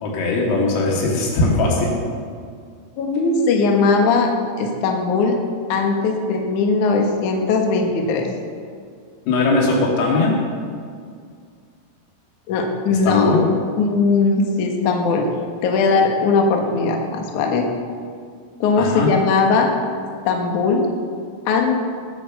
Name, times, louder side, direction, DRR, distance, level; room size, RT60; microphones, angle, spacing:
voice 1, 0.0-1.9 9.3-10.4 13.0-13.4 18.8-19.1, left 3 dB, 90° left, -2 dB, 5.3 m, -19 dB
voice 2, 3.0-4.3 4.6-5.4 5.7-8.3 12.5-13.4 13.8-15.2 15.6-17.6 18.6-19.7 20.2-20.9 21.5-21.7, left 4 dB, 65° left, 2 dB, 2.1 m, -19 dB
19.0 x 8.7 x 6.7 m, 2.1 s
omnidirectional pair, 5.8 m